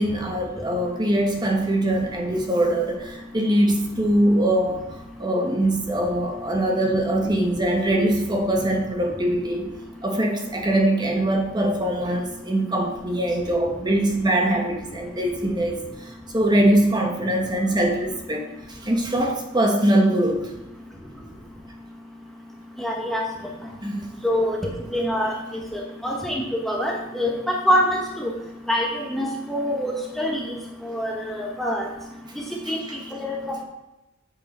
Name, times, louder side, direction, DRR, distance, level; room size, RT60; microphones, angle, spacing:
voice 1, 0.0-4.8 5.2-9.7 10.0-15.8 16.3-20.4 23.8-24.1 32.6-32.8, right 1 dB, 20° right, 2 dB, 1.1 m, -22 dB
voice 2, 22.8-23.3 24.2-24.6 24.9-25.3 25.7-28.3 28.7-30.6 30.8-31.9 32.7-32.8 33.1-33.6, equal, ahead, -2 dB, 0.9 m, -25 dB
8.8 x 4.6 x 5.3 m, 0.96 s
head